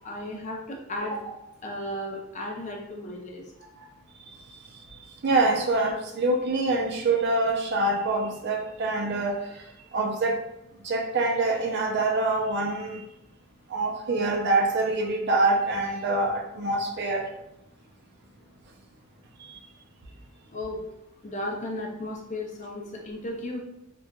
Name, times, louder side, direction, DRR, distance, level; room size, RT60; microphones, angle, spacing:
voice 1, 0.0-3.4 20.5-20.8 21.2-23.6, left 1 dB, 30° left, 0 dB, 0.4 m, -35 dB
voice 2, 4.7-10.4 10.8-13.0 13.7-17.3 19.4-19.6, right 2 dB, 50° right, 1 dB, 0.4 m, -26 dB
2.8 x 2.3 x 2.2 m, 0.85 s
head